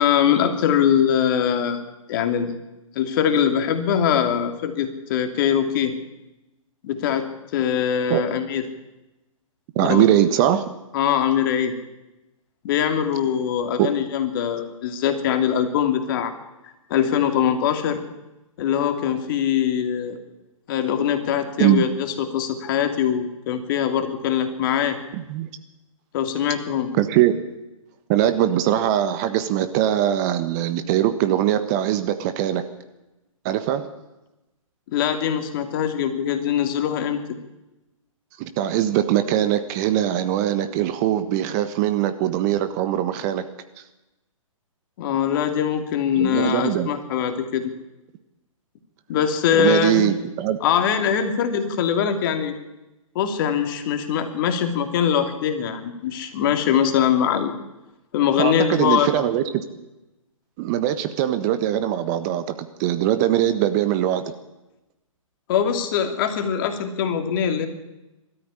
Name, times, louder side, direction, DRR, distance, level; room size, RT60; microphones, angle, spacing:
voice 1, 0.0-1.8 2.1-2.5 2.9-5.9 6.8-7.3 7.5-8.6 9.9-10.1 10.9-11.7 12.6-16.3 16.9-18.0 18.6-20.2 20.7-25.0 26.1-26.9 34.9-37.2 45.0-47.7 49.1-50.1 50.6-52.5 53.1-57.5 58.1-59.1 65.5-67.7, left 8 dB, 40° left, 6 dB, 2.7 m, -22 dB
voice 2, 9.7-10.7 13.8-13.9 21.6-21.9 25.1-25.5 27.0-27.4 28.1-32.6 33.4-33.9 38.4-43.4 46.2-46.9 49.5-50.6 58.4-59.6 60.6-62.4 62.8-64.2, right 12 dB, 30° right, 10 dB, 1.4 m, -21 dB
21.0 x 13.5 x 9.9 m, 1.0 s
figure-of-eight pair, 130°, 17 cm